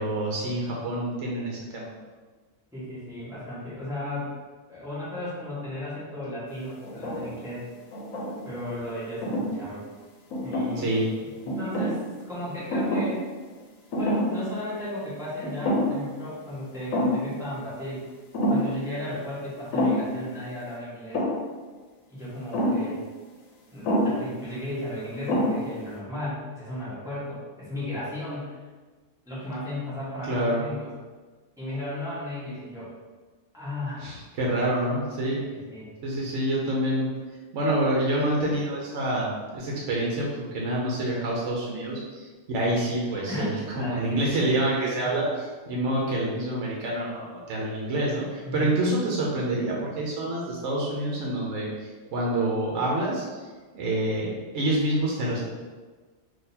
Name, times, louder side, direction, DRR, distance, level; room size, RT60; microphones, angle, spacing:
voice 1, 0.0-1.9 10.8-11.1 30.2-30.6 34.0-35.4 36.0-37.1 37.5-43.5 43.8-53.5 53.7-54.3 54.5-55.4, right 1 dB, 65° right, -3 dB, 1.0 m, -27 dB
voice 2, 2.7-4.3 4.7-7.7 8.4-9.8 10.4-11.0 11.4-12.0 12.3-13.3 13.9-18.0 18.5-21.3 22.1-23.0 23.7-28.6 29.3-30.9 31.6-32.9 33.5-34.1 35.5-35.9 43.3-44.5 45.0-45.3 48.4-48.7, left 1 dB, 5° right, -11 dB, 1.2 m, -35 dB
sound 1, 6.8-7.4 7.9-8.6 9.2-9.5 10.3-11.0 11.5-12.0 12.7-13.2 13.5-13.6 13.9-14.4 14.8-14.9 15.4-16.1 16.4-16.5 16.9-17.3 18.3-18.7 19.7-20.2 21.1-21.5 22.5-22.9 23.8-24.2 24.9-25.0 25.3-25.8, equal, 80° left, 1.1 m, -26 dB
3.8 x 2.8 x 2.7 m, 1.3 s
omnidirectional pair, 1.4 m